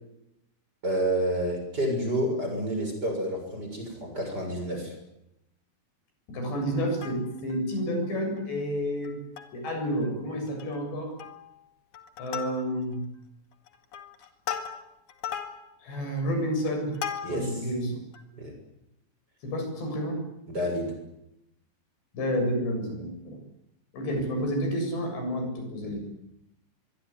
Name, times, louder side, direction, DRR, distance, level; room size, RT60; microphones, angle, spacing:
voice 1, 0.8-4.9 17.2-17.6 18.3-18.5 20.5-20.9 25.8-26.0, right 1 dB, 20° right, 3 dB, 7.2 m, -29 dB
voice 2, 6.3-9.2 9.5-11.1 12.2-13.1 15.8-17.0 17.3-18.0 19.4-20.2 22.1-23.4 23.9-26.0, equal, 85° left, 4 dB, 9.5 m, -30 dB
Plucked string instrument, 6.8-7.6 8.0-8.1 8.4-8.6 9.0-9.7 10.0-10.1 10.5-10.8 11.2-11.6 11.9-13.0 13.5-17.6 18.1-18.2, left 8 dB, 55° left, 3.1 m, -38 dB
24.0 x 23.0 x 9.9 m, 0.84 s
omnidirectional pair, 4.8 m